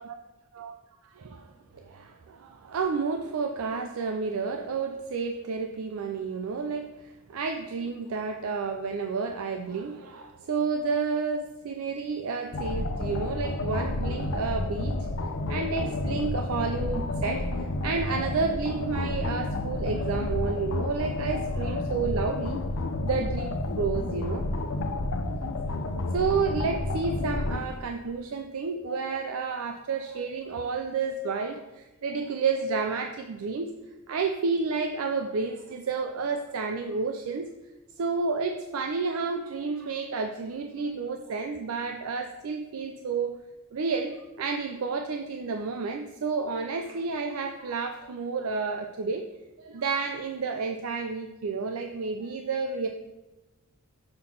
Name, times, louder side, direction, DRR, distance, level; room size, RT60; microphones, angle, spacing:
voice 1, 0.5-15.1 15.5-22.6 23.0-24.5 25.8-25.9 26.1-33.8 34.1-37.5 38.0-43.4 43.7-49.2 49.6-52.9, right 4 dB, 80° right, 5 dB, 0.4 m, -31 dB
sound 1, 12.5-27.6, left 2 dB, 65° left, 0.6 m, -30 dB
6.5 x 3.8 x 5.9 m, 1.1 s
head